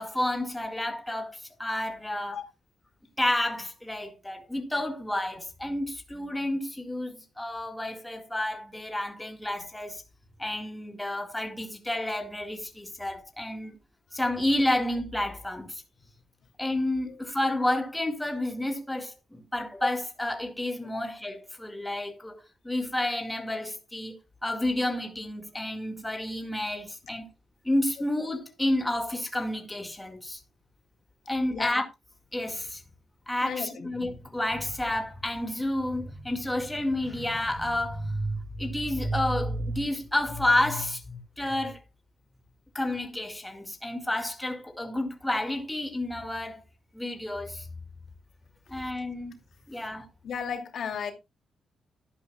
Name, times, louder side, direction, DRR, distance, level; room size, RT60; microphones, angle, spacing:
voice 1, 0.0-2.4 3.2-10.0 10.4-13.8 14.1-15.8 16.6-22.4 22.6-27.3 27.6-30.4 31.3-31.9 32.3-32.8 33.3-41.8 42.7-46.6 46.9-47.7 48.7-49.3 49.7-50.1, left 1 dB, 10° left, 2.0 m, -30 dB
voice 2, 33.4-33.9 50.2-51.1, left 7 dB, 70° left, 2.6 m, -34 dB
12.0 x 11.0 x 2.3 m
cardioid pair, 90°, 0 cm